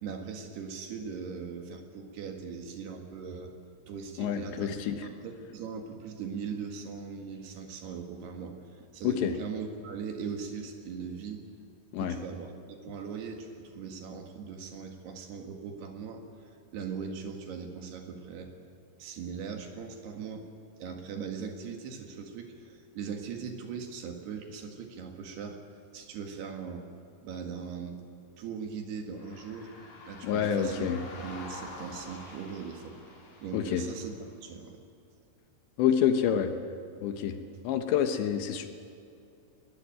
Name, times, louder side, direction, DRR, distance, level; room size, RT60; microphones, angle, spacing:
voice 1, 0.0-3.5 3.9-11.5 12.0-18.5 19.0-20.5 20.8-25.6 25.9-26.9 27.2-28.0 28.4-29.7 30.1-30.9 31.2-33.0 33.4-34.8, right 6 dB, 60° right, 4 dB, 3.6 m, -40 dB
voice 2, 4.2-5.1 9.0-9.3 11.9-12.1 30.2-31.0 33.5-33.8 35.8-36.5 37.0-37.4 37.6-38.7, left 8 dB, 75° left, 7 dB, 3.1 m, -27 dB
sound 1, 29.1-34.3, left 2 dB, 40° left, 5.0 m, -47 dB
21.5 x 20.5 x 9.1 m, 2.5 s
omnidirectional pair, 5.6 m